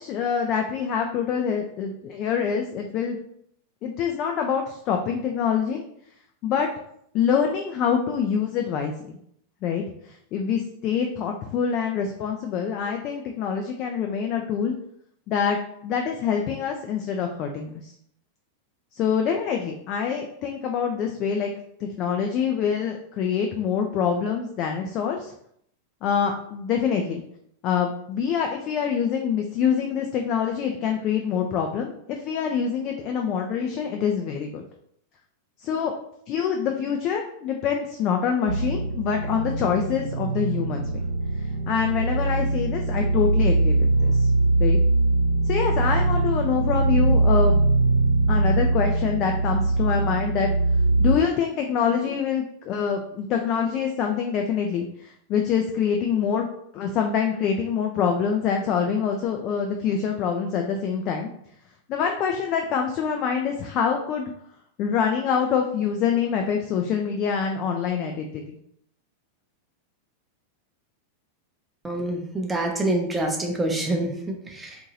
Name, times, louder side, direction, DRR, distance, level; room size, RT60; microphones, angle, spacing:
voice 1, 0.0-3.2 3.8-5.8 6.4-6.7 7.1-9.2 9.6-14.7 15.3-15.6 15.8-17.9 18.9-21.5 21.8-25.3 26.0-27.2 27.6-34.6 35.6-35.9 36.3-40.9 41.7-44.3 44.6-44.8 45.5-47.6 48.3-50.5 51.0-56.5 56.7-61.3 61.9-64.3 64.8-68.4, left 7 dB, 40° left, 3 dB, 0.3 m, -25 dB
sound 1, 38.5-51.1, right 2 dB, 75° right, 0.8 m, -22 dB
voice 2, 71.8-74.8, right 1 dB, 10° right, 1 dB, 0.5 m, -26 dB
2.7 x 2.5 x 2.7 m, 0.69 s
figure-of-eight pair, 90°, 0 cm